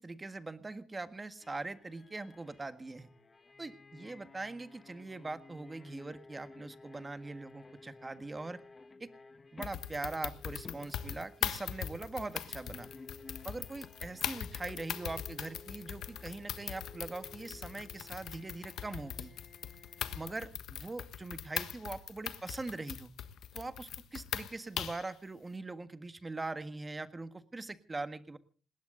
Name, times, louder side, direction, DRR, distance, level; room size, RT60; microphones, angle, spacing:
voice 1, 0.0-3.1 3.6-8.6 9.0-9.1 9.5-12.9 13.4-19.3 20.1-23.1 23.5-28.4, right 3 dB, 20° right, 11 dB, 1.6 m, -42 dB
sound 1, 1.4-20.3, left 3 dB, 30° left, 1.6 m, -55 dB
sound 2, 9.6-25.1, left 10 dB, 75° left, 1.4 m, -40 dB
20.0 x 17.5 x 3.9 m, 0.40 s
cardioid pair, 90°, 0 cm